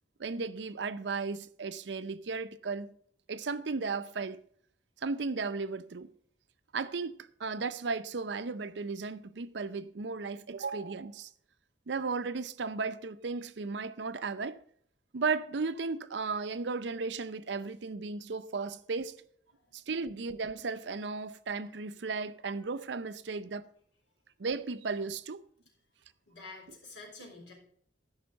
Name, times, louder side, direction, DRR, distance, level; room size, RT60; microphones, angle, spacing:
voice 1, 0.2-3.0 3.3-4.4 5.0-6.1 6.7-11.3 11.9-14.6 15.1-19.2 19.7-23.7 24.4-25.4, right 4 dB, 70° right, 0.6 m, -35 dB
voice 2, 26.3-27.5, left 3 dB, 80° left, 3.8 m, -49 dB
13.0 x 5.6 x 5.2 m
head